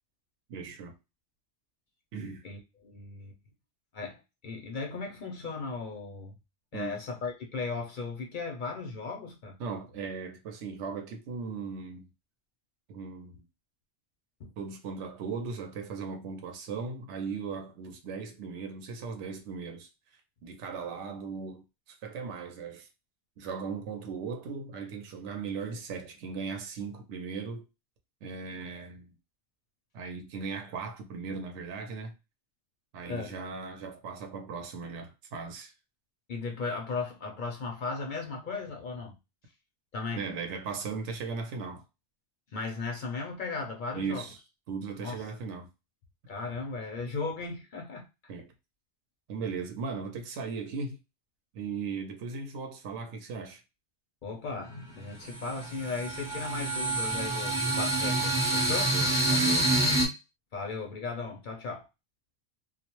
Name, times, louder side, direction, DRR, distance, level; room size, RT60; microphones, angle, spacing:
voice 1, 0.5-0.9 2.1-2.4 6.7-7.0 9.6-12.1 12.9-13.4 14.6-19.9 20.4-22.9 23.4-27.6 28.2-29.1 29.9-32.1 32.9-35.7 40.1-41.8 43.9-44.4 44.7-45.7 48.3-48.5 49.3-51.0 51.5-53.6 58.7-59.7, right 5 dB, 80° right, 0.9 m, -38 dB
voice 2, 2.4-3.3 3.9-6.3 6.7-9.6 14.4-14.5 33.1-33.3 36.3-39.2 39.9-40.2 42.5-44.3 45.0-45.3 46.3-48.1 54.2-59.0 60.5-61.9, left 4 dB, 55° left, 0.6 m, -36 dB
sound 1, 54.6-54.7 55.1-60.1, right 1 dB, 5° right, 0.3 m, -27 dB
2.3 x 2.0 x 2.9 m
omnidirectional pair, 1.2 m